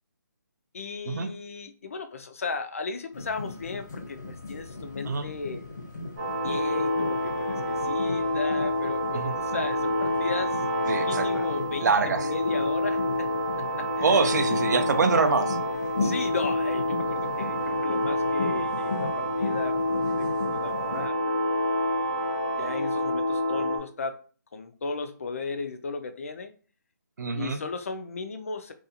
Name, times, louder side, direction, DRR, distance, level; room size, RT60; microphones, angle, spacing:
voice 1, 0.7-5.6 6.4-10.6 10.9-13.3 13.6-14.4 16.0-21.6 22.6-24.3 24.5-26.5 27.3-28.7, left 4 dB, 45° left, 8 dB, 0.4 m, -36 dB
sound 1, 3.1-21.1, left 3 dB, 70° left, 0.8 m, -37 dB
sound 2, 6.2-23.8, left 1 dB, 30° right, 0.9 m, -28 dB
voice 2, 10.9-11.5 11.8-12.3 14.0-15.6 27.2-27.6, right 4 dB, 65° right, 7 dB, 0.4 m, -25 dB
2.5 x 2.3 x 2.7 m, 0.39 s
hypercardioid pair, 170°, 10 cm